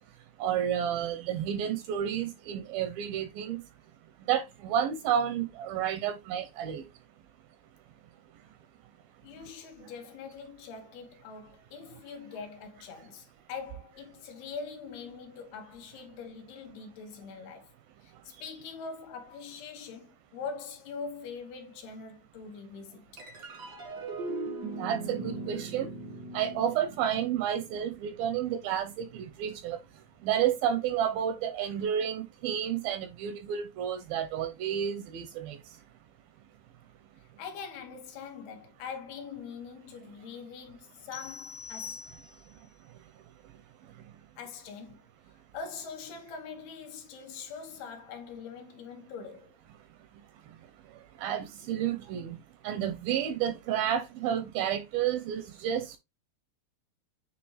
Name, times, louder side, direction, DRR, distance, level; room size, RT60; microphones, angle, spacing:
voice 1, 0.4-3.6 4.3-6.8 24.8-25.9 26.3-29.8 30.2-35.6 51.2-52.4 52.6-56.0, right 9 dB, 80° right, 2.3 m, -30 dB
voice 2, 9.2-17.7 18.0-23.1 37.4-42.1 44.4-45.0 45.5-49.6, left 5 dB, 75° left, 3.1 m, -43 dB
sound 1, 23.2-29.8, right 3 dB, 55° right, 1.1 m, -40 dB
sound 2, 41.1-42.7, left 6 dB, 90° left, 1.5 m, -44 dB
9.2 x 3.3 x 3.1 m
omnidirectional pair, 4.7 m